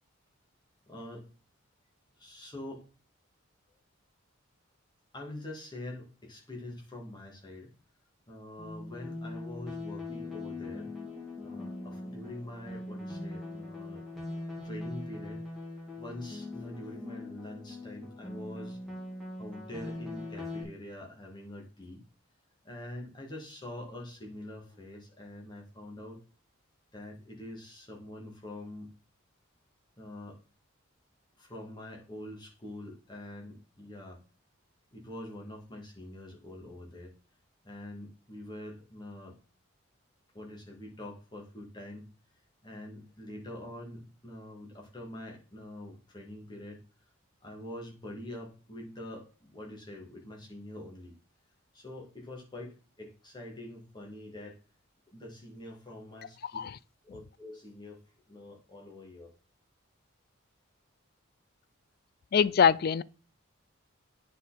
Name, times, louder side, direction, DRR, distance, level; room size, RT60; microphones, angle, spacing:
voice 1, 0.9-1.3 2.2-2.8 5.1-7.7 8.3-10.9 11.4-14.0 14.6-15.5 16.0-18.8 19.4-22.0 22.6-26.2 26.9-28.9 30.0-30.4 31.4-34.2 34.9-37.1 37.6-39.4 40.3-42.1 42.6-46.8 47.4-51.1 51.7-54.6 55.1-56.4 57.0-58.0 58.3-59.3, left 1 dB, 20° left, 2.1 m, -45 dB
sound 1, 8.6-20.6, left 2 dB, ahead, 2.4 m, -41 dB
voice 2, 62.3-63.0, left 7 dB, 45° left, 0.3 m, -23 dB
9.0 x 4.2 x 4.1 m
head